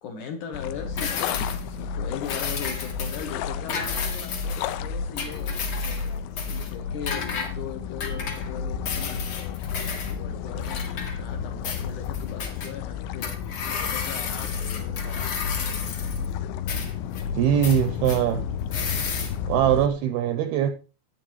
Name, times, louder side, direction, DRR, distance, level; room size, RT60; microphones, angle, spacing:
voice 1, 0.0-5.5 6.5-9.3 10.1-13.4 13.7-15.4, left 7 dB, 75° left, 1.8 m, -39 dB
sound 1, 0.5-19.9, left 7 dB, 90° left, 3.0 m, -31 dB
sound 2, 1.0-1.7 2.2-3.3 3.7-4.7 5.1-6.1 6.4-6.7 7.1-7.5 8.0-8.5 8.9-10.1 10.6-11.4 11.6-12.7 13.2-16.3 16.7-17.2 17.6-18.2 18.7-19.3, left 5 dB, 50° left, 1.8 m, -33 dB
voice 2, 17.3-18.4 19.5-20.7, right 10 dB, 85° right, 2.3 m, -22 dB
13.5 x 9.1 x 3.0 m
omnidirectional pair, 5.1 m